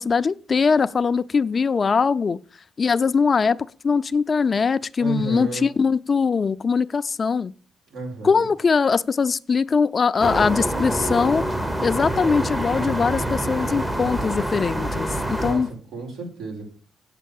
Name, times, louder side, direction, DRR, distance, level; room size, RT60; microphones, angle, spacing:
voice 1, 0.0-2.4 2.8-3.6 3.8-7.5 8.2-11.4 11.8-15.7, left 5 dB, 40° left, 0.4 m, -21 dB
voice 2, 5.0-5.7 7.9-8.5 15.4-16.6, right 3 dB, 80° right, 5.1 m, -32 dB
sound 1, 10.2-15.7, right 1 dB, 10° right, 0.9 m, -26 dB
8.3 x 7.4 x 7.1 m
cardioid pair, 90°, 0 cm